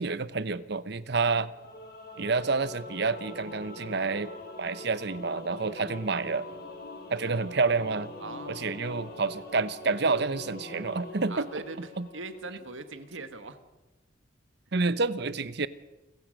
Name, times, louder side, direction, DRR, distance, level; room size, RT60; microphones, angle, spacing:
voice 1, 0.0-1.5 2.2-4.3 4.6-6.5 7.1-8.1 8.5-11.5 11.8-12.1 14.7-15.7, right 4 dB, 55° right, 16 dB, 0.8 m, -29 dB
Singing / Musical instrument, 1.5-12.8, left 2 dB, 50° left, 5.6 m, -43 dB
voice 2, 8.2-8.9 11.3-13.6, right 3 dB, 75° right, 10 dB, 1.6 m, -42 dB
28.5 x 15.5 x 6.5 m, 1.1 s
head